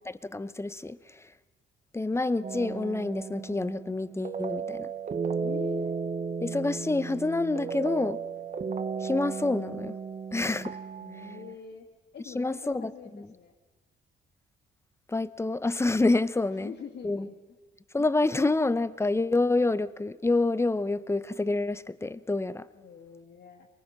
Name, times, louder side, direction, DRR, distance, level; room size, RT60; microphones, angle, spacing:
voice 1, 0.1-1.3 1.9-4.9 6.4-8.2 9.0-10.0 10.3-10.8 12.3-13.3 15.1-16.7 17.0-17.3 17.9-22.7, left 2 dB, 15° left, 0.7 m, -28 dB
sound 1, 2.4-11.6, right 5 dB, 35° right, 0.9 m, -34 dB
voice 2, 5.4-5.9 11.0-11.9 12.1-13.5 16.4-17.4 22.7-23.7, left 6 dB, 60° left, 2.3 m, -44 dB
23.5 x 19.5 x 5.8 m
cardioid pair, 90°, 20 cm